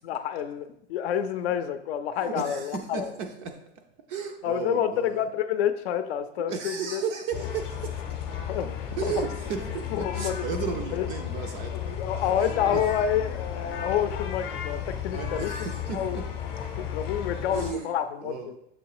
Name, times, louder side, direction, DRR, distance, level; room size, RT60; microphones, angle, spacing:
voice 1, 0.0-3.1 4.4-7.0 8.5-8.7 9.0-9.2 9.9-10.4 10.9-11.1 11.7-15.7 15.9-16.2 16.8-18.6, left 9 dB, 65° left, 10 dB, 0.6 m, -28 dB
voice 2, 2.2-3.6 4.1-5.3 6.5-8.0 8.6-11.9 12.4-12.8 15.1-16.3 17.5-17.9 18.2-18.6, right 6 dB, 25° right, 5 dB, 0.4 m, -34 dB
sound 1, 7.3-17.7, left 8 dB, 30° left, 0.7 m, -34 dB
6.8 x 3.1 x 4.7 m, 0.77 s
supercardioid pair, 155°, 34 cm